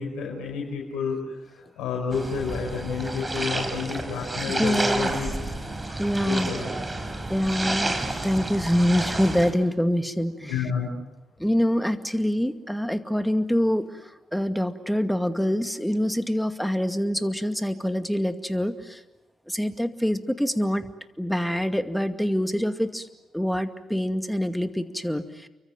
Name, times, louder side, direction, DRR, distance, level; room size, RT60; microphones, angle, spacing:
voice 1, 0.0-5.3 6.3-6.7 10.5-10.9, left 5 dB, 70° left, -1 dB, 5.4 m, -30 dB
sound 1, 2.1-9.5, right 2 dB, 25° right, 4.7 m, -30 dB
voice 2, 4.5-5.1 6.0-6.5 7.3-7.9 8.2-10.7 11.4-19.0 19.5-20.9 21.2-23.1 23.3-25.5, equal, ahead, 9 dB, 2.2 m, -25 dB
29.5 x 24.0 x 7.8 m, 1.0 s
hypercardioid pair, 40°, 0 cm